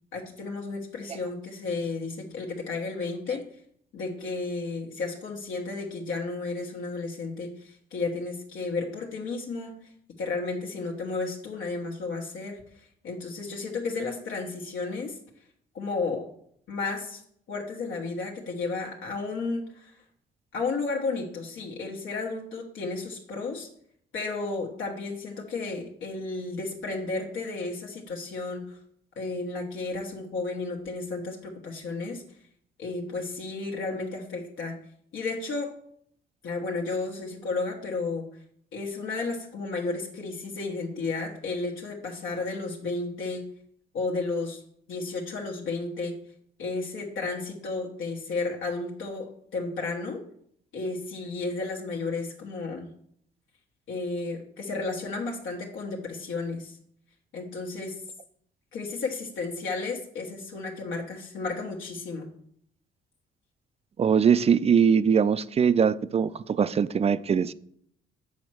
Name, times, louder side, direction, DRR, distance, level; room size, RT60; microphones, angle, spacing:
voice 1, 0.1-3.4 3.9-9.8 10.2-15.2 15.7-16.2 16.7-17.2 17.5-20.0 20.5-23.7 24.1-28.8 29.2-32.2 32.8-34.8 35.1-35.7 36.4-38.3 38.7-43.4 43.9-44.6 44.9-46.2 46.6-50.2 50.7-52.9 53.9-56.8 57.3-58.0 58.7-62.3, left 3 dB, 75° left, 1.3 m, -33 dB
voice 2, 64.0-67.5, right 7 dB, 30° right, 0.4 m, -22 dB
7.1 x 4.3 x 6.2 m
cardioid pair, 90°, 20 cm